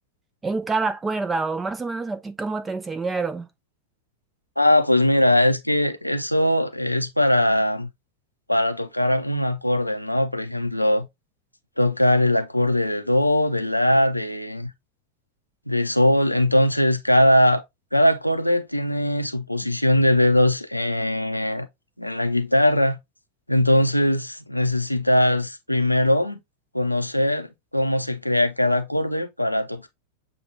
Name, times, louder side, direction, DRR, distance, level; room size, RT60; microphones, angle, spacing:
voice 1, 0.4-3.4, right 4 dB, 15° right, 0.6 m, -27 dB
voice 2, 4.6-7.9 8.5-11.1 11.8-14.7 15.7-17.6 17.9-21.7 22.0-23.0 23.5-26.4 26.7-29.9, left 1 dB, 90° left, 0.5 m, -21 dB
6.9 x 2.3 x 3.2 m
figure-of-eight pair, 90°, 0 cm